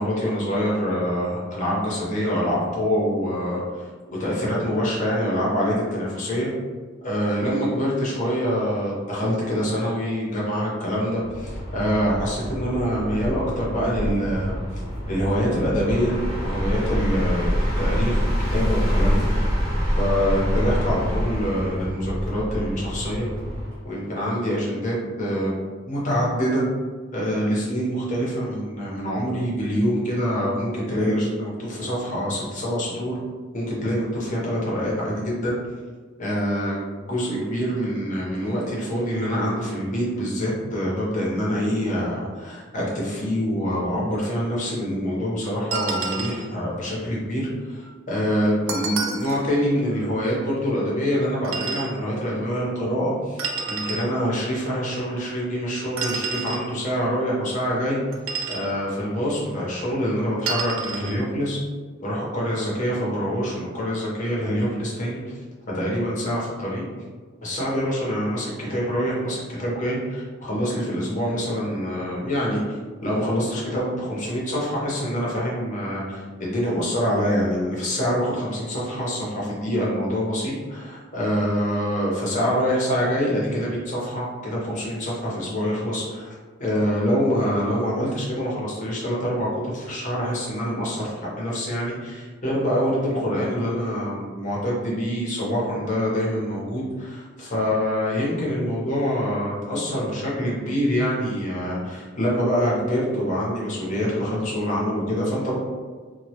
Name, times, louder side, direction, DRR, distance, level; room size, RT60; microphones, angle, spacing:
voice 1, 0.0-3.9 4.2-6.5 7.0-14.6 15.1-18.2 18.5-19.2 20.0-23.3 23.8-25.5 25.8-26.6 27.1-33.2 33.5-35.5 36.2-58.0 58.5-61.6 62.0-65.4 65.7-66.8 67.4-86.3 86.6-105.6, equal, 40° left, -5 dB, 0.7 m, -25 dB
sound 1, 11.2-23.8, equal, 20° right, 0.7 m, -26 dB
sound 2, 45.7-46.5 48.7-49.4 51.4-51.9 53.4-54.1 56.0-56.7 58.1-58.7 60.5-61.2, right 4 dB, 80° right, 0.4 m, -29 dB
2.1 x 2.0 x 2.8 m, 1.5 s
head